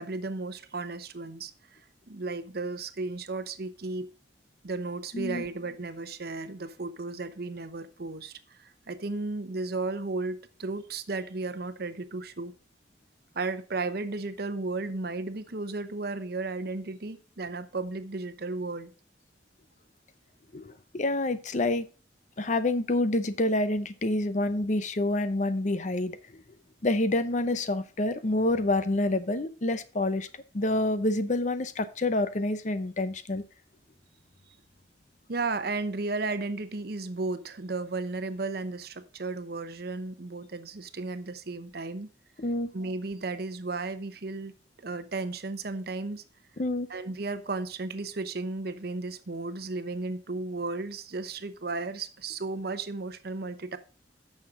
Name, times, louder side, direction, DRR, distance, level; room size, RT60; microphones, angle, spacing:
voice 1, 0.0-1.8 2.1-4.1 4.6-12.5 13.3-18.9 35.3-42.1 42.7-44.5 44.8-46.2 46.9-53.8, right 3 dB, 60° right, 0.9 m, -34 dB
voice 2, 20.5-21.9 22.4-26.2 26.8-30.3 30.5-33.4 42.4-42.7 46.6-46.9, left 2 dB, 45° left, 0.7 m, -27 dB
9.7 x 6.5 x 3.7 m
head